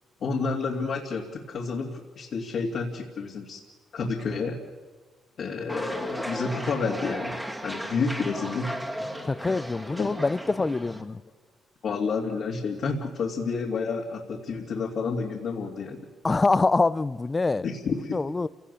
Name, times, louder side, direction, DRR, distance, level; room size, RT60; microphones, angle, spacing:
voice 1, 0.2-3.6 3.9-4.6 5.4-8.7 9.9-10.1 11.8-16.0 17.6-18.2, left 4 dB, 60° left, 2.7 m, -30 dB
sound 1, 5.7-11.0, equal, 5° right, 2.2 m, -35 dB
voice 2, 9.2-11.2 16.2-17.7 18.1-18.5, left 3 dB, 25° left, 0.6 m, -25 dB
28.5 x 17.5 x 7.0 m
cardioid pair, 90°, 0 cm